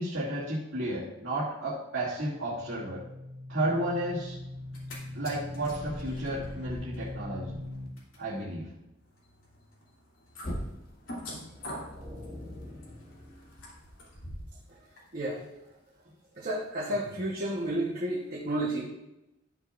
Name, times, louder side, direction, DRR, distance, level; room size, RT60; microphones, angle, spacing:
voice 1, 0.0-3.0 3.5-4.3 5.1-7.6 8.2-8.7, right 1 dB, 60° right, -9 dB, 2.4 m, -32 dB
sound 1, 2.1-7.9 10.4-11.2, left 1 dB, 45° left, 1.4 m, -40 dB
sound 2, 4.6-5.0 5.2-14.6 15.0-15.1, left 1 dB, 75° left, 2.8 m, -46 dB
sound 3, 11.2-14.1, left 1 dB, 25° right, 2.8 m, -46 dB
voice 2, 15.1-15.4 16.4-18.9, right 1 dB, 45° right, -4 dB, 1.1 m, -31 dB
12.5 x 7.2 x 2.5 m, 0.90 s
head